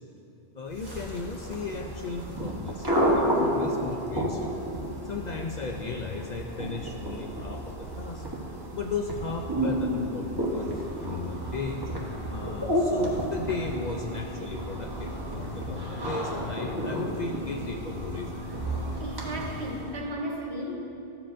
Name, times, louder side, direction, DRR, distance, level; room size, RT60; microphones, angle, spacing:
voice 1, 0.6-4.6 5.0-8.3 8.7-11.9 12.3-18.5, left 4 dB, 55° left, 2 dB, 0.5 m, -36 dB
sound 1, 0.7-20.0, equal, 20° right, 1.1 m, -31 dB
voice 2, 19.0-20.8, right 1 dB, 75° right, 0 dB, 1.3 m, -34 dB
13.0 x 7.6 x 2.5 m, 2.7 s
omnidirectional pair, 1.1 m